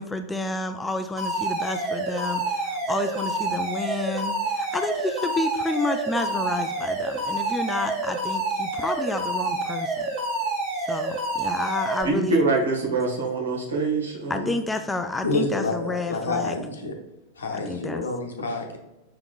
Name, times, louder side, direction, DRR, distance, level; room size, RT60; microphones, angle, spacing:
voice 1, 0.0-10.1 10.8-12.4 14.3-16.6 17.7-18.1, left 2 dB, 10° left, 7 dB, 0.3 m, -30 dB
Alarm, 1.2-12.0, right 2 dB, 40° right, 1.3 m, -28 dB
voice 2, 12.0-14.5, right 3 dB, 70° right, -1 dB, 1.2 m, -24 dB
voice 3, 15.2-16.9 17.4-18.8, left 2 dB, 70° left, 3 dB, 0.8 m, -28 dB
5.7 x 3.5 x 2.4 m, 0.97 s
figure-of-eight pair, 90°, 0 cm